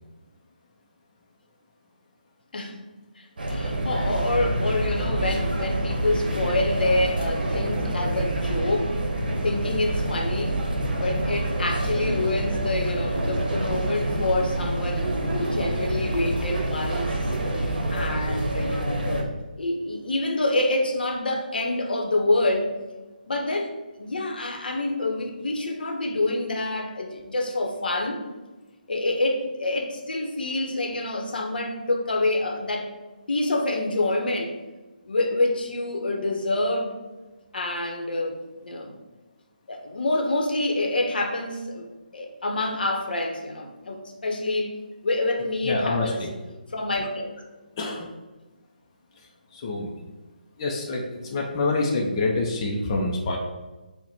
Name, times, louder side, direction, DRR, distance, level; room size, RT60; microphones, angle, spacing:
voice 1, 2.5-2.8 3.2-8.9 9.4-10.6 11.0-17.1 17.9-22.7 23.2-28.2 28.9-32.9 33.3-34.5 35.1-36.9 37.5-38.9 39.7-41.9 42.1-44.8 45.0-46.2 46.7-47.3, left 2 dB, 70° left, 3 dB, 0.7 m, -27 dB
sound 1, 3.4-19.2, right 1 dB, 70° right, 0.9 m, -27 dB
voice 2, 45.6-46.3 47.8-48.1 49.2-49.9 50.6-53.4, left 2 dB, 30° left, -1 dB, 0.4 m, -27 dB
4.0 x 2.1 x 4.2 m, 1.2 s
figure-of-eight pair, 155°, 5 cm